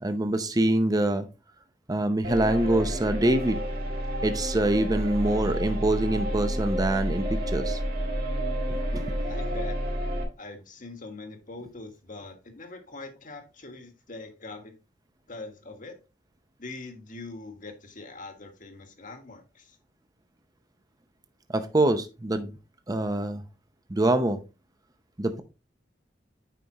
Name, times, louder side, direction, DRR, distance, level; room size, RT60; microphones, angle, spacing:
voice 1, 0.0-1.3 1.9-3.6 4.2-7.8 8.9-9.0 21.5-22.5 22.9-23.4 23.9-24.4 25.2-25.4, right 1 dB, 20° right, 0.7 m, -25 dB
sound 1, 2.2-10.2, equal, 55° right, 1.9 m, -30 dB
voice 2, 9.3-9.8 10.4-14.8 15.3-16.0 16.6-19.8, left 3 dB, 50° left, 1.5 m, -42 dB
9.3 x 5.0 x 2.9 m
head